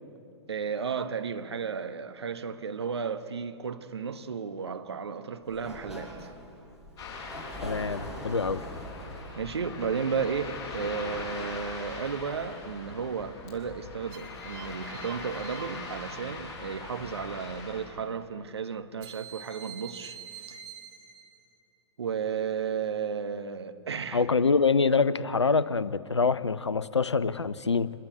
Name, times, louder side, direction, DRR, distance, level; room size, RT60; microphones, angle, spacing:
voice 1, 0.5-6.3 9.4-20.2 20.5-20.6 22.0-24.2, right 6 dB, 70° right, 1.2 m, -33 dB
Sliding door, 5.4-11.1, equal, 5° right, 6.2 m, -43 dB
Ocean, 7.0-17.9, left 3 dB, 25° left, 7.8 m, -41 dB
voice 2, 7.6-8.6 24.1-27.9, left 4 dB, 80° left, 0.7 m, -25 dB
sound 1, 14.1-16.8 19.0-21.6, right 7 dB, 35° right, 2.5 m, -47 dB
26.0 x 21.0 x 8.5 m
figure-of-eight pair, 105°, 14 cm